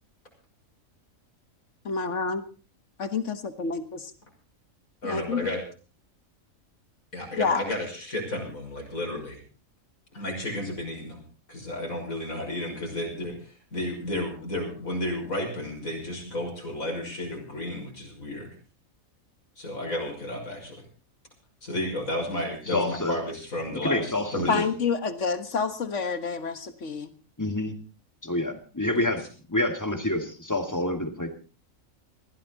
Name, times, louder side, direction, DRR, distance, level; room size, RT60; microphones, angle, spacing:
voice 1, 1.9-2.4 3.0-4.1 5.0-5.4 7.3-7.6 24.5-27.1, left 5 dB, 60° left, 11 dB, 1.8 m, -28 dB
voice 2, 5.0-5.6 7.1-9.4 10.1-11.2 11.5-18.5 19.6-20.8 21.6-24.0 24.3-24.6 29.0-29.1, left 1 dB, 80° left, 1 dB, 6.4 m, -32 dB
voice 3, 22.7-23.2 23.8-24.7 27.4-27.8 28.2-31.3, left 1 dB, 15° left, 6 dB, 2.2 m, -28 dB
21.0 x 15.0 x 4.1 m, 0.35 s
omnidirectional pair, 1.4 m